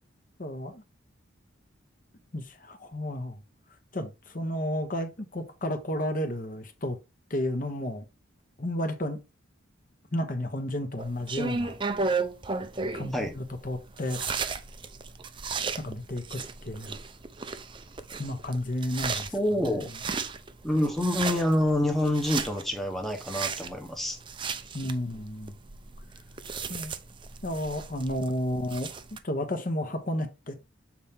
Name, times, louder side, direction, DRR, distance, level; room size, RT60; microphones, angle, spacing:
voice 1, 0.4-0.8 2.3-3.4 3.9-7.0 7.3-8.0 8.6-9.2 10.1-11.8 12.9-14.2 15.8-17.0 18.2-19.3 24.7-25.5 26.7-26.9 27.4-28.9 29.2-30.6, left 1 dB, 40° left, 1.0 m, -32 dB
sound 1, 11.0-29.2, right 4 dB, 25° right, 0.5 m, -35 dB
voice 2, 19.1-19.9 20.6-24.2, left 1 dB, ahead, 0.9 m, -27 dB
7.3 x 4.3 x 3.6 m
head